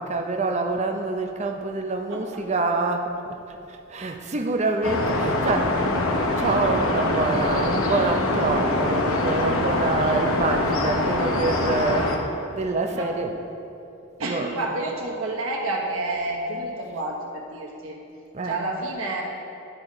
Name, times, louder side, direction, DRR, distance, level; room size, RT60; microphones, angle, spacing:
voice 1, 0.0-5.8 6.1-12.2 12.5-13.4 14.2-14.6 18.3-18.7, right 3 dB, 35° right, 4 dB, 0.5 m, -26 dB
voice 2, 2.1-2.5 12.9-13.1 14.2-18.0 18.4-19.2, right 2 dB, 85° right, -1 dB, 1.2 m, -29 dB
sound 1, 4.8-12.2, left 2 dB, 90° left, 0.8 m, -24 dB
11.5 x 4.2 x 4.9 m, 2.8 s
head